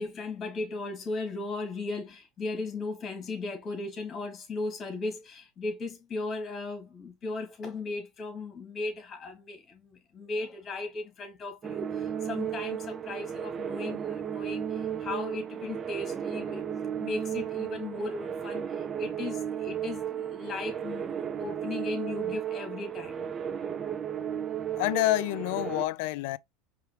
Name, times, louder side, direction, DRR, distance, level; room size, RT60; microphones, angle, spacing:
voice 1, 0.0-16.6 17.0-21.1 21.4-23.3, left 3 dB, 30° left, 2.6 m, -36 dB
sound 1, 11.6-25.9, right 8 dB, 30° right, 0.5 m, -34 dB
voice 2, 24.8-26.4, left 18 dB, 70° left, 0.3 m, -28 dB
4.8 x 3.3 x 3.3 m
hypercardioid pair, 85°, 0 cm